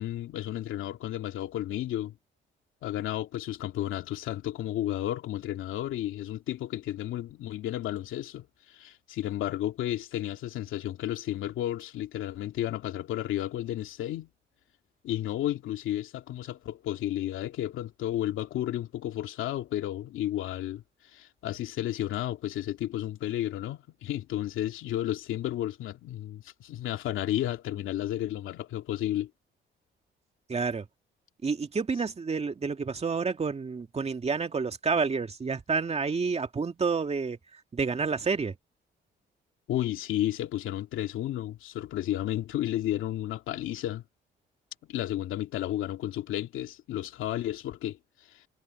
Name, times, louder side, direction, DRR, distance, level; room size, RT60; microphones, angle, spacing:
voice 1, 0.0-2.1 2.8-14.3 15.0-20.8 21.1-29.3 39.7-44.0 44.9-48.0 48.3-48.4, left 13 dB, 85° left, 2.6 m, -32 dB
voice 2, 30.5-30.8 31.4-37.4 37.7-38.5, right 5 dB, 30° right, 2.2 m, -29 dB
cardioid pair, 90°, 20 cm